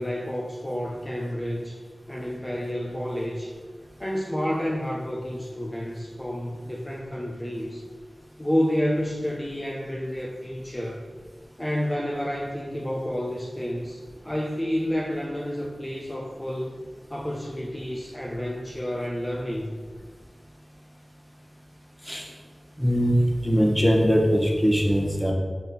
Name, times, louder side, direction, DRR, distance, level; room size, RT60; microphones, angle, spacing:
voice 1, 0.0-1.8 2.1-3.5 4.0-7.8 8.4-11.0 11.6-16.8 17.1-19.8, equal, 20° left, -4 dB, 0.8 m, -30 dB
voice 2, 22.8-23.2 23.4-25.3, equal, ahead, -1 dB, 1.3 m, -21 dB
4.5 x 4.0 x 5.3 m, 1.5 s
cardioid pair, 40°, 0 cm